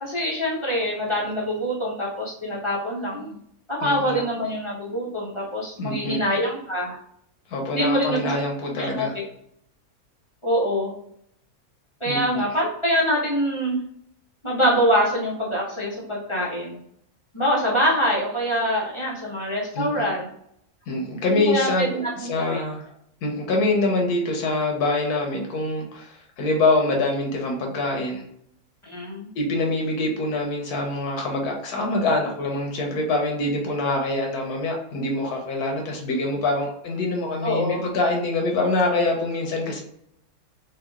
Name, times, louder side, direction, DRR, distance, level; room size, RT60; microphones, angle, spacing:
voice 1, 0.0-3.4 3.7-7.0 7.7-8.2 8.7-9.2 10.4-10.9 12.0-13.8 14.4-16.8 17.3-20.3 21.5-22.6 28.8-29.3 37.4-37.9, equal, 25° left, -5 dB, 0.7 m, -24 dB
voice 2, 3.8-4.2 5.8-6.2 7.5-9.1 12.0-12.4 19.8-20.1 20.9-22.8 23.2-28.2 29.3-39.8, left 2 dB, 85° left, 1 dB, 1.2 m, -25 dB
2.9 x 2.7 x 3.5 m, 0.71 s
omnidirectional pair, 1.5 m